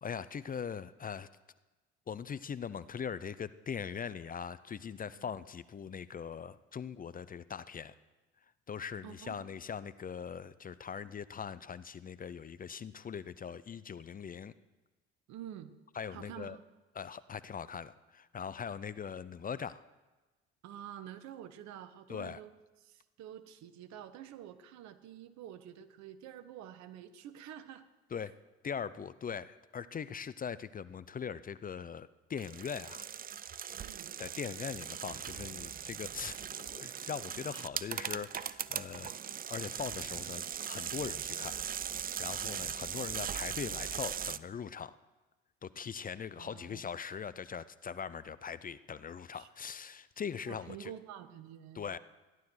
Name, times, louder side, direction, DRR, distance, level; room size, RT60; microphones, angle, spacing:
voice 1, 0.0-1.3 2.1-7.9 8.7-14.5 16.0-16.6 16.9-19.8 22.1-22.4 28.1-28.3 28.6-33.1 34.2-39.1 39.5-41.6 42.2-45.0 45.6-50.9 51.7-52.0, left 7 dB, 30° left, 16 dB, 0.6 m, -41 dB
voice 2, 9.0-9.4 15.3-15.7 16.1-16.6 20.6-22.5 22.8-27.8 33.8-34.1 46.4-46.8 49.3-49.5 50.5-51.9, right 10 dB, 65° right, 12 dB, 1.2 m, -48 dB
sound 1, 32.4-44.4, right 8 dB, 30° right, 0.5 m, -39 dB
15.0 x 11.5 x 6.3 m, 1.2 s
hypercardioid pair, 65°, 30 cm